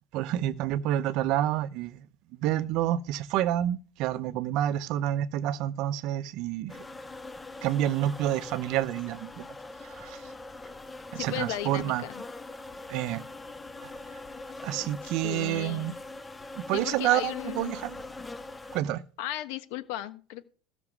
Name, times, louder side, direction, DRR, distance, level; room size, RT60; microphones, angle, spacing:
voice 1, 0.1-2.0 2.4-6.7 7.6-9.4 10.0-10.2 11.1-12.0 12.9-13.2 14.6-15.9 16.7-18.0 18.7-19.0, right 12 dB, 50° right, 0.7 m, -28 dB
sound 1, 6.7-18.8, left 2 dB, 10° left, 0.6 m, -42 dB
voice 2, 11.1-12.2 15.0-15.9 16.7-17.8 19.2-20.4, left 13 dB, 65° left, 1.2 m, -36 dB
15.0 x 6.0 x 6.0 m
cardioid pair, 165°, 0 cm